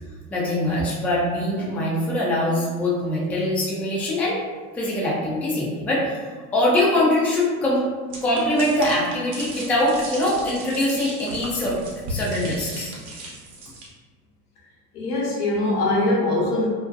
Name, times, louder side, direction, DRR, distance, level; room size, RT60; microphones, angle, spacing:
voice 1, 0.3-4.4 4.7-7.9 8.2-11.8 12.1-12.9, left 1 dB, 5° left, -5 dB, 0.3 m, -23 dB
sound 1, 8.1-13.9, right 1 dB, 65° right, 0.9 m, -36 dB
voice 2, 14.9-16.7, left 2 dB, 85° left, -4 dB, 0.9 m, -22 dB
2.6 x 2.1 x 2.4 m, 1.5 s
hypercardioid pair, 90°, 46 cm